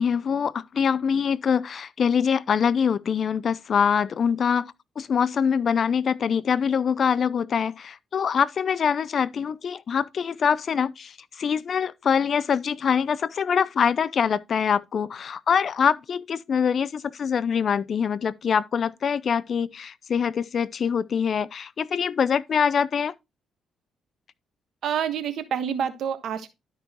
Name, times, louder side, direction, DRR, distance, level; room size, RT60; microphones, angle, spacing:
voice 1, 0.0-23.1, left 7 dB, 50° left, 0.5 m, -24 dB
voice 2, 24.8-26.5, right 8 dB, 70° right, 1.3 m, -27 dB
12.5 x 5.3 x 2.9 m
cardioid pair, 90°, 0 cm